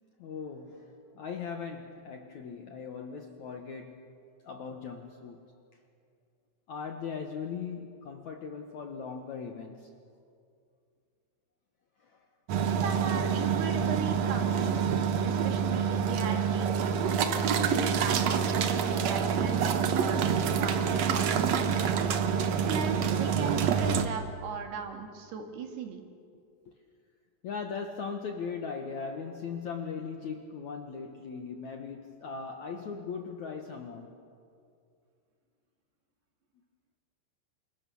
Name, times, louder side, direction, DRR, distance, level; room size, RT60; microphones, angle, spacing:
voice 1, 0.2-4.0 4.4-5.4 6.7-9.9 12.0-12.3 26.7-26.8 27.4-34.1, left 5 dB, 65° left, 4 dB, 2.0 m, -39 dB
sound 1, 12.5-24.0, right 7 dB, 85° right, 1.5 m, -27 dB
voice 2, 12.8-14.8 15.2-18.5 19.0-21.8 22.7-26.0, right 6 dB, 65° right, 4 dB, 4.0 m, -38 dB
29.0 x 27.0 x 7.1 m, 2.4 s
omnidirectional pair, 5.0 m